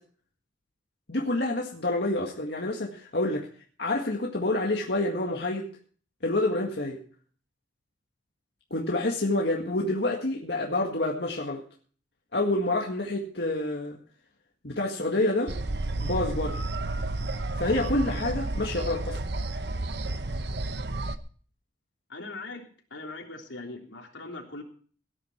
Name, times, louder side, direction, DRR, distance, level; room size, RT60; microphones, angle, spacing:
voice 1, 1.1-3.5 3.8-5.7 6.2-7.0 8.7-11.6 12.3-14.0 14.6-15.5 16.0-16.6 17.6-19.2, left 2 dB, 60° left, -1 dB, 1.9 m, -28 dB
sound 1, 15.5-21.2, right 2 dB, 60° right, 0.9 m, -31 dB
voice 2, 22.1-22.6 22.9-24.6, left 2 dB, 85° left, 2 dB, 3.4 m, -40 dB
17.0 x 10.0 x 4.5 m, 0.44 s
head